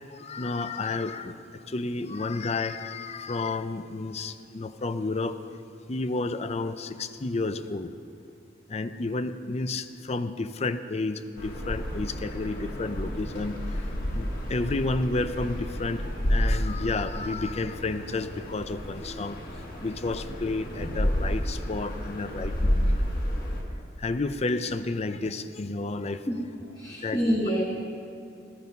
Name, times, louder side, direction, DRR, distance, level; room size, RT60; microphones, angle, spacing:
voice 1, 0.1-5.4 5.9-7.9 8.7-13.9 14.1-16.0 16.3-19.4 19.8-23.0 24.0-26.2 27.0-27.4, left 3 dB, 35° left, 11 dB, 0.5 m, -31 dB
sound 1, 11.4-23.6, equal, 55° left, 2.2 m, -30 dB
voice 2, 26.3-27.6, equal, 20° left, -4 dB, 1.5 m, -27 dB
14.5 x 14.5 x 5.3 m, 2.5 s
head